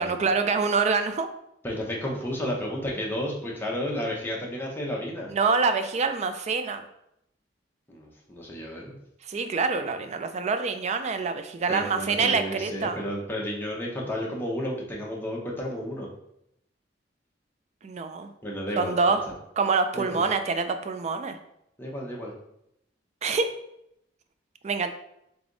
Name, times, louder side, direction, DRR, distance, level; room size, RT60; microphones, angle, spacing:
voice 1, 0.0-1.3 5.3-6.8 9.3-13.0 17.8-18.3 18.8-19.2 19.6-21.4 23.2-23.5 24.6-24.9, right 4 dB, 40° right, 8 dB, 0.4 m, -26 dB
voice 2, 1.6-5.3 7.9-8.9 11.7-16.1 18.4-19.0 19.9-20.3 21.8-22.3, equal, 10° left, -3 dB, 0.9 m, -32 dB
3.5 x 3.4 x 3.9 m, 0.79 s
head